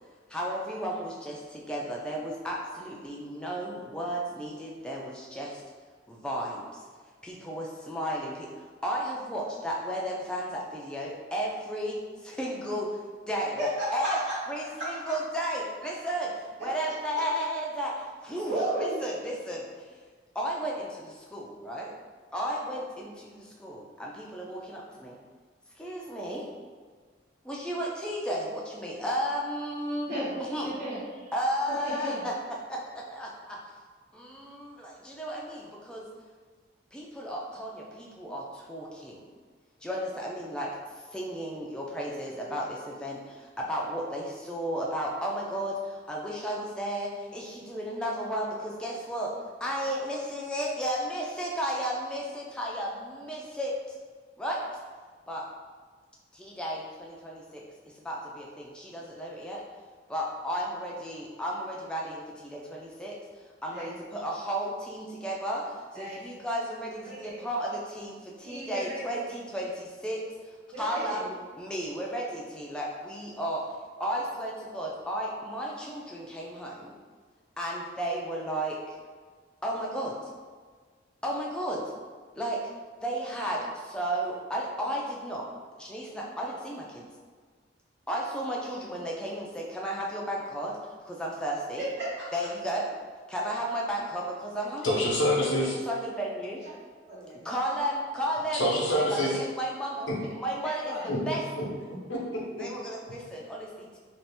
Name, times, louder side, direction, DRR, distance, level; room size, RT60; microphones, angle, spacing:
voice 1, 0.3-5.6 6.1-6.8 7.2-13.0 13.3-14.2 14.5-16.3 16.6-18.5 18.8-19.9 20.3-21.9 22.3-25.2 25.8-26.5 27.4-30.1 30.5-30.7 31.3-32.3 32.7-33.6 34.1-36.0 36.9-39.3 39.8-40.7 41.1-49.3 49.6-54.0 54.4-54.6 55.3-55.4 56.3-57.6 58.0-59.6 60.1-63.2 63.6-70.2 70.8-71.2 71.6-73.6 74.0-76.9 77.6-79.0 79.6-80.1 81.2-81.8 82.4-82.6 83.0-85.5 85.8-87.0 88.1-90.7 91.1-91.8 92.3-92.9 93.3-95.1 95.4-96.6 97.4-98.7 99.1-100.0 100.3-101.4 102.6-104.0, equal, 5° left, -4 dB, 0.4 m, -33 dB
voice 2, 13.6-14.3 18.5-19.0 30.1-30.3 30.6-31.3 31.7-32.2 63.7-63.9 65.9-66.2 67.1-67.4 68.4-69.0 70.7-71.3 91.8-92.3 97.1-97.4 100.8-101.1, right 1 dB, 75° right, -12 dB, 1.1 m, -33 dB
voice 3, 94.8-95.8 98.5-99.4 100.1-100.2 101.1-101.6 102.1-102.7, equal, 85° left, -3 dB, 0.8 m, -27 dB
2.7 x 2.4 x 3.4 m, 1.5 s
head